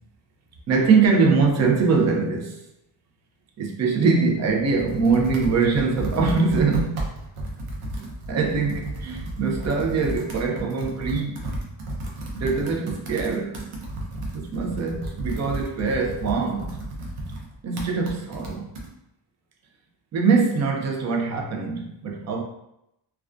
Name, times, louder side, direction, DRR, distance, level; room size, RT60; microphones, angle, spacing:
voice 1, 0.7-2.7 3.6-7.1 8.3-11.5 12.3-13.7 14.3-16.8 17.6-18.7 20.1-22.4, right 4 dB, 35° right, 0.4 m, -23 dB
Computer keyboard, 4.3-18.9, right 1 dB, 85° right, 0.7 m, -33 dB
2.3 x 2.2 x 2.4 m
cardioid pair, 95°, 49 cm